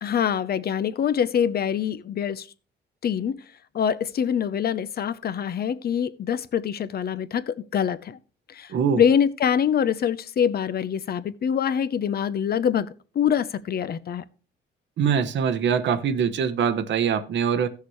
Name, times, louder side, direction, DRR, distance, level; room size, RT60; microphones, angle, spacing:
voice 1, 0.0-2.5 3.0-3.4 3.7-8.2 8.5-14.3, left 8 dB, 50° left, 0.7 m, -25 dB
voice 2, 8.7-9.0 15.0-17.7, right 7 dB, 65° right, 1.0 m, -23 dB
15.5 x 6.7 x 3.1 m
cardioid pair, 90°, 20 cm